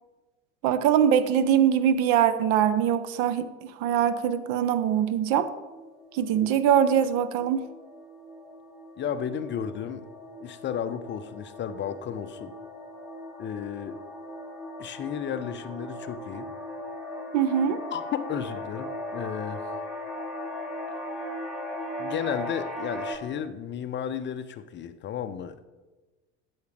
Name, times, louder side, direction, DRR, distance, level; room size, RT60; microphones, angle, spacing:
voice 1, 0.6-5.5 6.1-7.7 17.3-17.8, right 9 dB, 50° right, 13 dB, 0.7 m, -23 dB
sound 1, 5.4-23.2, left 1 dB, ahead, 1.9 m, -38 dB
voice 2, 9.0-10.1 10.4-12.5 13.4-14.0 14.8-16.5 17.9-19.6 22.0-25.7, left 8 dB, 30° left, 11 dB, 0.6 m, -33 dB
13.0 x 7.2 x 3.3 m, 1.2 s
figure-of-eight pair, 65°, 37 cm